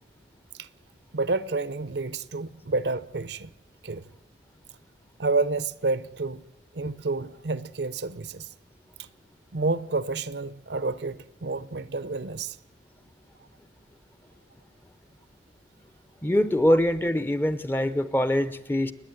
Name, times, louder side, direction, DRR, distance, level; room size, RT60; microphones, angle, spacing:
voice 1, 1.1-3.5 3.8-4.1 5.2-6.4 6.7-8.5 9.0-9.1 9.5-12.6 16.7-16.8, right 3 dB, 60° right, 0.7 m, -29 dB
voice 2, 16.2-18.9, left 1 dB, 10° left, 0.7 m, -23 dB
30.0 x 10.0 x 9.1 m
head